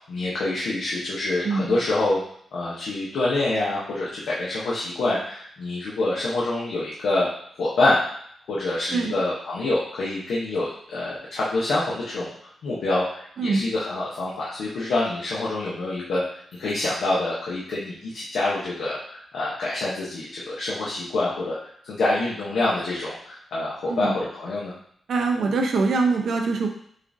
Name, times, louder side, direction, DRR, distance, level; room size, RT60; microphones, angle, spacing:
voice 1, 0.1-2.2 2.5-7.3 7.6-8.0 8.5-12.3 12.6-21.6 21.8-24.7, left 2 dB, 90° left, -6 dB, 0.8 m, -26 dB
voice 2, 25.1-26.7, right 4 dB, 75° right, 3 dB, 0.6 m, -23 dB
6.3 x 2.5 x 2.6 m, 0.65 s
cardioid pair, 90°, 0 cm